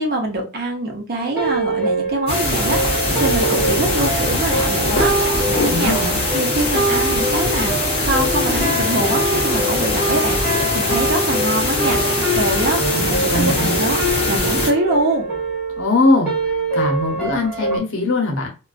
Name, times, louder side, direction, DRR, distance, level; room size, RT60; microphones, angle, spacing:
voice 1, 0.0-6.0 6.3-7.7 8.0-14.0 14.3-15.3, right 1 dB, 45° right, 0.7 m, -24 dB
sound 1, 1.4-17.8, right 2 dB, 5° right, 1.1 m, -24 dB
sound 2, 2.3-14.7, left 2 dB, 25° left, 0.7 m, -21 dB
voice 2, 5.7-6.2 12.8-13.0 13.3-13.8 15.8-16.3 16.7-18.5, left 2 dB, 65° left, 0.8 m, -20 dB
2.4 x 2.2 x 2.3 m
head